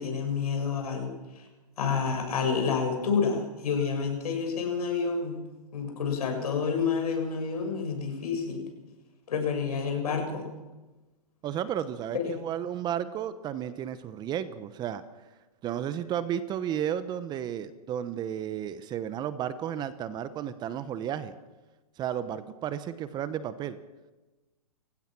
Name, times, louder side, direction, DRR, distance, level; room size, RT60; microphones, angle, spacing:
voice 1, 0.0-1.5 1.8-5.4 5.7-8.6 9.3-10.5 12.1-12.4, left 5 dB, 70° left, 3 dB, 7.2 m, -29 dB
voice 2, 11.4-15.0 15.6-21.3 22.0-23.8, right 9 dB, 20° right, 13 dB, 1.0 m, -33 dB
30.0 x 16.0 x 6.1 m, 1.1 s
hypercardioid pair, 135°, 20 cm